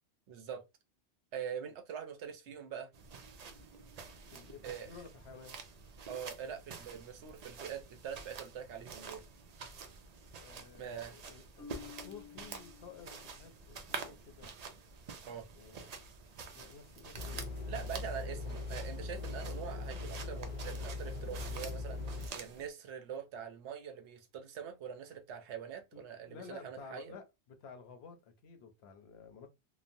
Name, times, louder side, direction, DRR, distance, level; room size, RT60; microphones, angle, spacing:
voice 1, 0.3-0.6 1.3-2.9 4.6-4.9 6.1-9.2 10.8-11.2 15.3-15.5 17.7-27.2, right 8 dB, 75° right, 0.9 m, -44 dB
sound 1, 2.9-22.7, right 5 dB, 55° right, 0.4 m, -48 dB
voice 2, 4.3-5.6 10.4-14.5 15.5-16.0 16.5-17.5 25.9-29.5, left 5 dB, 70° left, 0.9 m, -53 dB
Marimba xylophone, 11.6-13.6, left 7 dB, 5° left, 0.3 m, -53 dB
sound 2, 17.1-22.3, left 3 dB, 45° left, 0.6 m, -40 dB
3.0 x 2.0 x 2.5 m
omnidirectional pair, 1.2 m